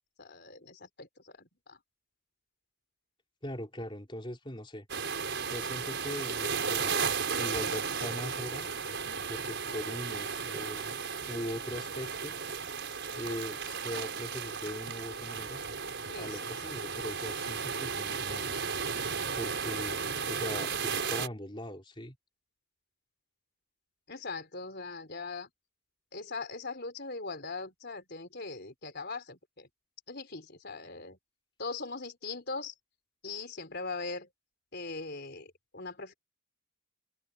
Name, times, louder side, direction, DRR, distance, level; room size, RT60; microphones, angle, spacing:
voice 1, 0.0-1.8 9.0-9.3 16.1-16.4 24.1-25.5 26.1-29.7 30.1-31.2 31.6-32.7 33.2-34.3 34.7-36.1, left 3 dB, 50° left, 4.4 m, -40 dB
voice 2, 3.4-4.9 5.5-8.7 9.3-11.0 11.3-12.4 13.2-15.6 16.2-18.5 19.4-22.2, equal, 25° left, 3.9 m, -40 dB
sound 1, 4.9-21.3, right 6 dB, 55° right, 6.0 m, -34 dB
head